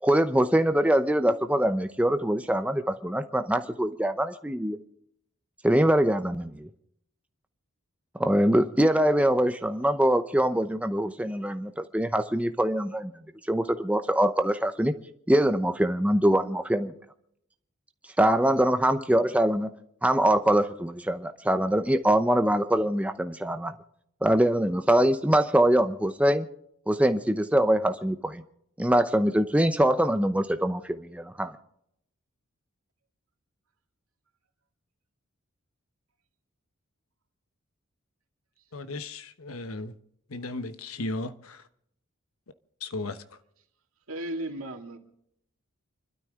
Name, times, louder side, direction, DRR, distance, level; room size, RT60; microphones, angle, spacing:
voice 1, 0.0-4.8 5.6-6.7 8.1-13.1 13.5-14.9 15.3-16.9 18.2-19.7 20.0-23.7 24.2-26.5 26.9-28.4 28.8-31.5, right 1 dB, 5° right, 8 dB, 0.8 m, -23 dB
voice 2, 38.7-39.9 40.3-41.3 42.8-43.2, left 2 dB, 85° left, 11 dB, 1.1 m, -35 dB
voice 3, 44.1-45.0, right 1 dB, 85° right, 3 dB, 2.4 m, -35 dB
29.5 x 12.5 x 3.7 m, 0.74 s
head